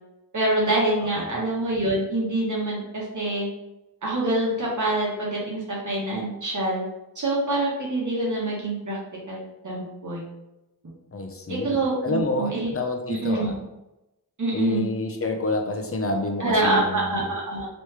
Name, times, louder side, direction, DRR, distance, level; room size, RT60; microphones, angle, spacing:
voice 1, 0.3-3.5 4.0-6.8 7.2-9.0 9.3-10.2 11.5-12.7 13.1-13.5 14.4-14.9 16.4-17.7, right 2 dB, 50° right, -4 dB, 1.1 m, -25 dB
voice 2, 1.0-1.3 11.1-13.6 14.5-17.3, left 2 dB, 35° left, 4 dB, 0.6 m, -29 dB
3.0 x 3.0 x 3.2 m, 0.93 s
wide cardioid pair, 75°, 40 cm